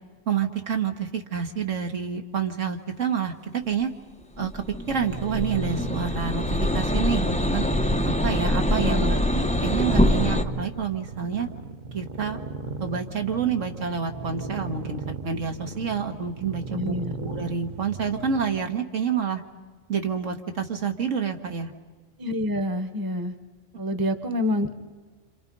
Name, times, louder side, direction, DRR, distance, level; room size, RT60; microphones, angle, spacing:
voice 1, 0.3-3.9 4.4-7.7 8.0-11.5 11.9-12.4 12.8-19.4 19.9-21.7, right 7 dB, 80° right, 4 dB, 1.9 m, -28 dB
sound 1, 4.4-10.4, left 1 dB, 5° left, 0.6 m, -24 dB
sound 2, 4.9-18.7, right 3 dB, 40° right, 0.9 m, -36 dB
voice 2, 16.7-17.1 22.2-23.3 23.8-24.8, left 1 dB, 20° right, 10 dB, 1.0 m, -27 dB
28.0 x 27.0 x 5.4 m, 1.4 s
omnidirectional pair, 1.3 m